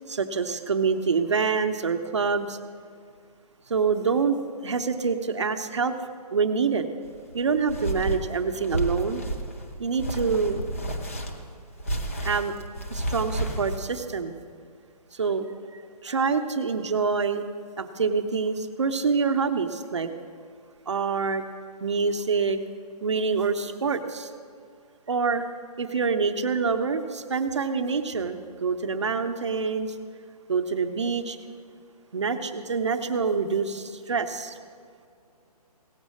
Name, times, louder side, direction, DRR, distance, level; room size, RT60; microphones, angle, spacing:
voice 1, 0.1-2.6 3.7-4.4 4.6-5.9 6.3-6.9 7.3-9.2 9.8-10.6 12.2-12.5 12.9-14.3 15.1-15.5 15.7-17.4 17.8-20.1 20.9-21.4 21.8-22.6 23.0-24.3 25.1-25.5 25.8-30.0 30.5-31.4 32.1-34.6, right 5 dB, 45° right, 7 dB, 0.6 m, -26 dB
sound 1, 7.0-13.8, right 1 dB, 20° left, 0.5 m, -31 dB
17.0 x 6.3 x 6.3 m, 2.2 s
hypercardioid pair, 180°, 20 cm